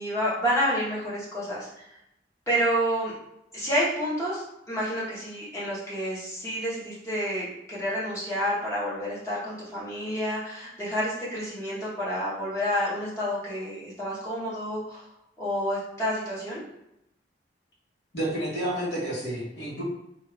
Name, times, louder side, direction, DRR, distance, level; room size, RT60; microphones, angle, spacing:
voice 1, 0.0-1.7 2.5-3.1 3.5-15.1 15.4-16.6, equal, 15° left, -9 dB, 1.0 m, -29 dB
voice 2, 18.1-19.8, right 1 dB, 65° left, -6 dB, 1.3 m, -30 dB
2.6 x 2.5 x 3.2 m, 0.82 s
head